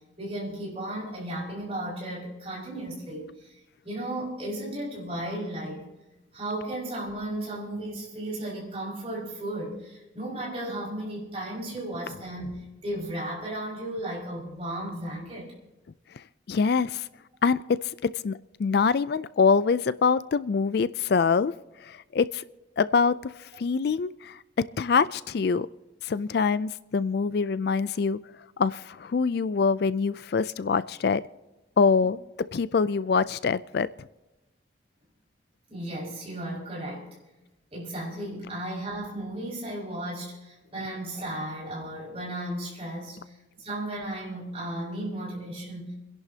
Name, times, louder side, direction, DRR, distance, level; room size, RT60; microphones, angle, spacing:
voice 1, 0.2-3.5 3.8-5.9 6.3-15.5 35.7-37.1 37.7-45.9, right 1 dB, 30° right, -5 dB, 5.6 m, -35 dB
voice 2, 16.5-17.1 17.4-21.5 21.8-22.4 22.8-24.4 24.8-25.7 26.0-28.2 28.6-31.2 31.8-32.2 32.5-33.9, left 5 dB, 55° left, 16 dB, 0.4 m, -24 dB
30.0 x 11.0 x 2.8 m, 1.0 s
head